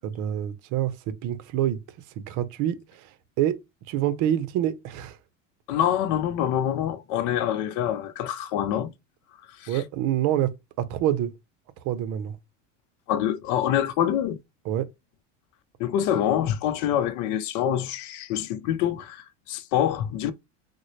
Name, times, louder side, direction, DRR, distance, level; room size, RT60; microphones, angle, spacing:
voice 1, 0.0-1.8 2.2-3.1 3.4-3.6 3.9-5.2 9.7-11.3 11.8-12.4 14.7-14.9, right 11 dB, 50° right, 0.7 m, -26 dB
voice 2, 5.7-8.9 9.5-9.8 13.1-14.4 15.8-20.3, left 10 dB, 50° left, 0.6 m, -26 dB
3.7 x 2.2 x 3.2 m
hypercardioid pair, 100°, 38 cm